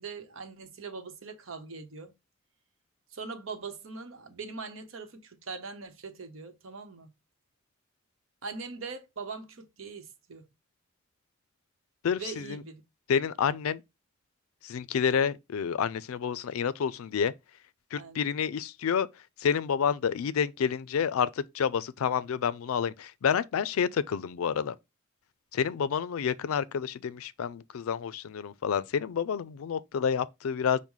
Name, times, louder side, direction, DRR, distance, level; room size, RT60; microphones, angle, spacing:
voice 1, 0.0-2.1 3.1-7.1 8.4-10.5 12.2-12.8 18.0-18.2, right 4 dB, 70° right, 0.9 m, -41 dB
voice 2, 12.0-12.6 13.1-13.8 14.6-17.3 17.9-19.1 19.4-24.8 25.5-30.8, left 7 dB, 90° left, 0.4 m, -29 dB
5.5 x 2.1 x 4.6 m
head